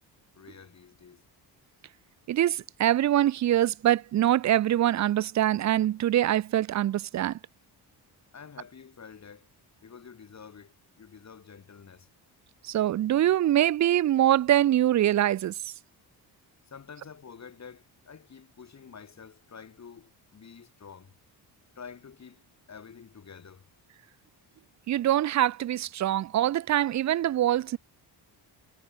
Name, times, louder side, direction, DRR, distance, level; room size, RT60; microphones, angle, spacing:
voice 1, 0.3-1.2 8.3-9.5 9.8-12.1 16.7-21.1 21.8-22.4 22.7-23.7, left 6 dB, 40° left, 7.0 m, -48 dB
voice 2, 2.3-7.4 12.6-15.6 24.9-27.8, right 12 dB, 45° right, 0.5 m, -24 dB
cardioid pair, 130°, 42 cm